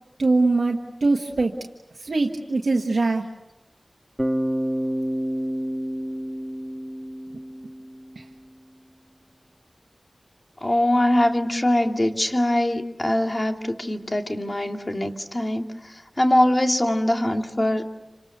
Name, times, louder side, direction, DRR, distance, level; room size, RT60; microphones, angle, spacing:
voice 1, 0.2-1.5 2.0-3.3 8.2-8.3, right 3 dB, 85° right, 1 dB, 1.4 m, -22 dB
Bass guitar, 4.2-8.2, equal, 10° right, 1.6 m, -29 dB
voice 2, 10.6-17.8, left 1 dB, 40° left, 4 dB, 2.5 m, -22 dB
28.5 x 26.5 x 6.8 m, 0.96 s
wide cardioid pair, 40°, 0 cm